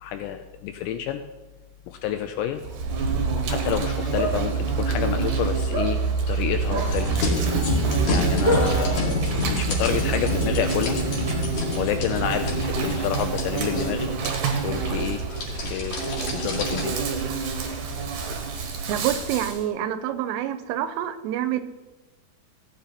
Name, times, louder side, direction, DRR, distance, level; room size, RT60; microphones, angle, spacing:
voice 1, 0.0-1.2 1.9-2.6 3.5-7.2 8.1-11.0 11.4-14.1 14.6-15.2 15.6-16.0 16.3-17.0, left 10 dB, 85° left, 7 dB, 2.6 m, -29 dB
Insect, 2.6-19.6, right 5 dB, 65° right, 2.1 m, -27 dB
sound 1, 3.6-9.6, right 1 dB, 30° right, 2.0 m, -31 dB
sound 2, 6.9-16.9, left 2 dB, 45° left, 2.6 m, -29 dB
voice 2, 18.9-21.6, right 11 dB, 90° right, 11 dB, 3.3 m, -27 dB
16.0 x 9.1 x 4.2 m, 1.1 s
omnidirectional pair, 5.6 m